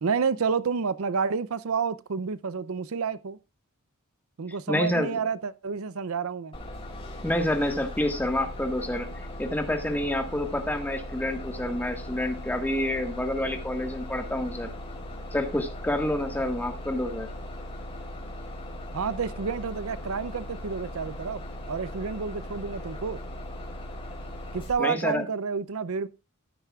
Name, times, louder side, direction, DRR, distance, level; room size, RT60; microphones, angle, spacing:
voice 1, 0.0-3.4 4.4-6.6 18.9-21.4 21.7-23.2 24.5-26.1, right 5 dB, 75° right, 0.5 m, -29 dB
voice 2, 4.7-5.1 7.2-14.7 15.3-17.3 24.8-25.2, left 1 dB, 10° left, 1.6 m, -28 dB
Bus, 6.5-24.7, left 1 dB, 25° left, 3.5 m, -38 dB
14.0 x 10.0 x 2.4 m
head